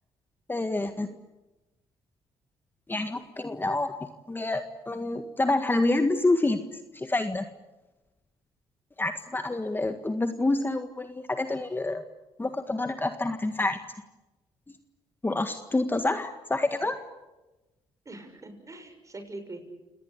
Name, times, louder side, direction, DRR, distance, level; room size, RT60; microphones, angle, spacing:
voice 1, 0.5-1.1 2.9-3.9 4.3-6.6 6.9-7.5 9.0-12.0 12.4-13.8 15.2-17.0, left 2 dB, 20° left, 8 dB, 1.7 m, -27 dB
voice 2, 18.0-19.6, right 2 dB, 30° right, 7 dB, 6.6 m, -42 dB
29.0 x 19.0 x 8.5 m, 1.0 s
supercardioid pair, 70°, 11 cm